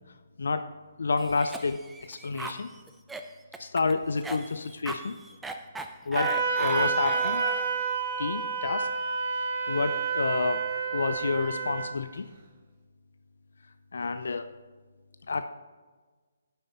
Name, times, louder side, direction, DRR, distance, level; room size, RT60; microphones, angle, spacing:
voice 1, 0.4-0.7 1.0-2.7 3.6-5.2 6.1-7.4 8.2-8.9 9.3-12.3 13.9-14.5 15.3-15.5, left 4 dB, 70° left, 10 dB, 0.5 m, -29 dB
Cough, 1.2-7.8, right 2 dB, 5° right, 0.6 m, -39 dB
Wind instrument woodwind instrument, 6.2-11.9, right 5 dB, 40° right, 1.7 m, -29 dB
10.5 x 7.7 x 4.4 m, 1.4 s
figure-of-eight pair, 140°, 0 cm